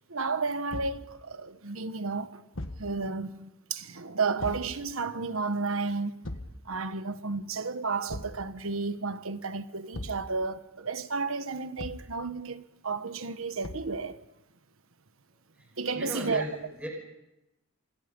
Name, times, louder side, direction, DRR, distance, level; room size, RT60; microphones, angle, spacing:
voice 1, 0.1-2.4 2.8-6.1 6.6-14.2 15.8-16.4, right 4 dB, 75° right, 1.4 m, -32 dB
Thump thud, 0.7-1.0 2.5-2.9 4.4-4.7 6.2-6.6 8.1-8.4 9.9-10.3 11.8-12.1 13.6-14.0, left 1 dB, 70° left, 1.7 m, -38 dB
voice 2, 15.6-16.9, equal, 5° right, 5.6 m, -37 dB
27.5 x 25.5 x 5.4 m
head